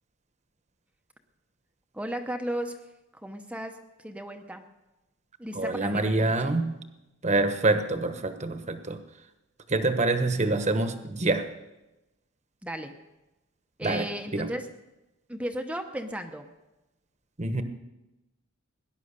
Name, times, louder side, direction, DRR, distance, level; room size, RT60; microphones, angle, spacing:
voice 1, 1.9-2.8 3.1-3.8 4.0-4.6 5.4-6.5 12.6-12.9 13.8-14.7 15.3-16.5, equal, 5° right, 5 dB, 0.9 m, -35 dB
voice 2, 5.5-6.8 7.2-9.0 9.7-11.5 13.8-14.1 14.3-14.5 17.4-17.6, right 2 dB, 35° right, 8 dB, 1.2 m, -26 dB
18.0 x 10.5 x 6.7 m, 1.0 s
head